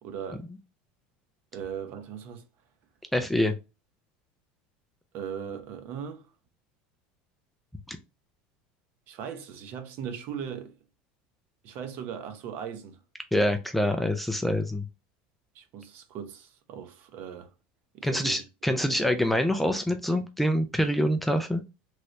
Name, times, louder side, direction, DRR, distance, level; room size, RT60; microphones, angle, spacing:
voice 1, 0.0-0.4 1.5-2.4 5.1-6.3 9.1-10.7 11.6-13.0 15.5-17.5 17.9-18.4 18.7-19.1, right 8 dB, 50° right, 0.7 m, -38 dB
voice 2, 3.1-3.6 7.9-8.0 13.3-14.8 18.0-21.6, left 1 dB, 5° left, 0.3 m, -25 dB
3.2 x 2.9 x 2.5 m
supercardioid pair, 145°, 4 cm